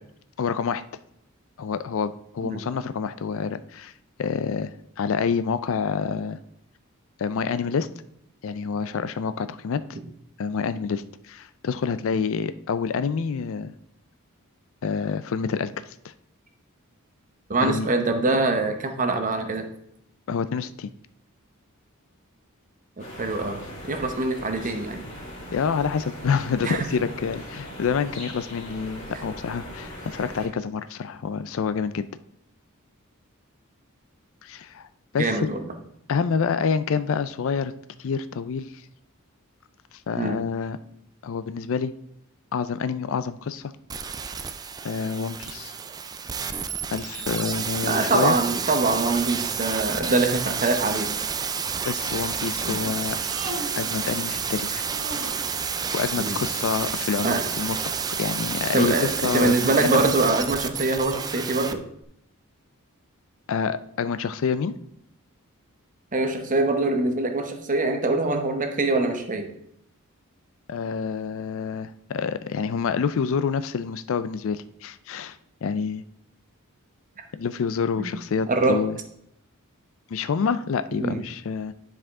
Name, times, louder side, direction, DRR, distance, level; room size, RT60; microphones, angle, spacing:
voice 1, 0.4-0.8 1.6-3.9 4.2-4.7 5.0-6.4 7.2-7.9 8.4-10.0 10.4-13.7 14.8-16.1 17.6-17.9 20.3-20.9 25.5-32.1 34.4-34.9 35.1-35.5 36.1-37.7 38.0-38.7 40.1-40.8 41.2-41.9 42.5-43.7 44.8-45.7 46.9-48.4 51.8-53.2 53.8-54.8 55.9-57.9 58.2-59.5 59.9-60.0 63.5-64.8 70.7-76.0 77.3-79.0 80.1-81.7, left 6 dB, 65° left, 13 dB, 0.4 m, -27 dB
voice 2, 17.5-19.7 23.2-23.6 23.9-25.0 26.6-26.8 35.2-35.6 40.2-40.4 47.9-51.1 52.6-52.8 56.2-56.4 57.2-57.4 58.7-59.1 59.3-61.8 66.1-69.5 78.0-78.2 78.5-78.8 80.9-81.2, right 2 dB, 35° right, 5 dB, 0.9 m, -24 dB
sound 1, 23.0-30.5, equal, 40° left, 2.5 m, -40 dB
sound 2, 43.9-61.7 62.0-62.1, right 6 dB, 20° right, 0.3 m, -30 dB
Human voice, 53.1-54.1 54.9-55.6 57.1-57.8, right 1 dB, 65° right, 1.5 m, -38 dB
10.0 x 4.9 x 3.6 m, 0.74 s
head